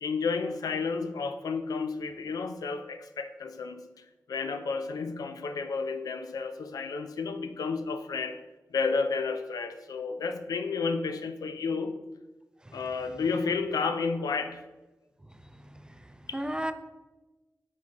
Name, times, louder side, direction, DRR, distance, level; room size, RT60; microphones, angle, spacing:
voice 1, 0.0-3.9 4.3-8.4 8.7-12.0 12.7-14.6 16.3-16.4, left 4 dB, 85° left, 9 dB, 0.5 m, -31 dB
voice 2, 15.5-16.7, right 1 dB, 15° right, 9 dB, 0.6 m, -36 dB
6.2 x 5.0 x 3.6 m, 1.1 s
cardioid pair, 45°, 6 cm